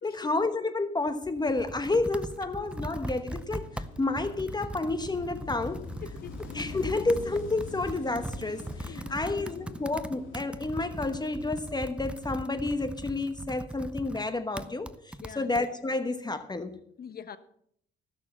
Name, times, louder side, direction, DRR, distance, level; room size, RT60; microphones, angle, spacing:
voice 1, 0.0-5.9 6.5-16.8, left 2 dB, 20° left, 1.1 m, -30 dB
Computer keyboard, 1.1-15.7, right 1 dB, 5° right, 0.6 m, -40 dB
Wind / Waves surf, 2.5-12.5, left 5 dB, 80° left, 2.3 m, -45 dB
voice 2, 6.0-6.4 6.9-7.0 8.9-9.5 15.2-15.5 17.0-17.4, left 7 dB, 50° left, 1.2 m, -44 dB
15.0 x 6.5 x 7.1 m
cardioid pair, 90°, 20 cm